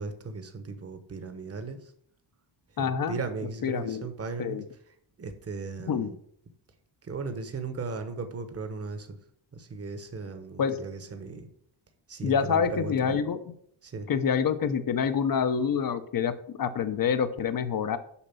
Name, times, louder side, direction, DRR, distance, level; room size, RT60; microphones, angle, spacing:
voice 1, 0.0-1.8 2.8-4.6 5.2-6.1 7.1-9.1 9.6-11.5 12.1-13.2 13.8-14.1, right 4 dB, 30° right, 8 dB, 1.1 m, -37 dB
voice 2, 2.8-4.1 4.4-4.7 5.9-6.1 10.6-10.8 12.2-13.5 14.1-18.0, left 7 dB, 45° left, 12 dB, 0.8 m, -27 dB
7.1 x 5.2 x 6.9 m, 0.67 s
wide cardioid pair, 145°, 48 cm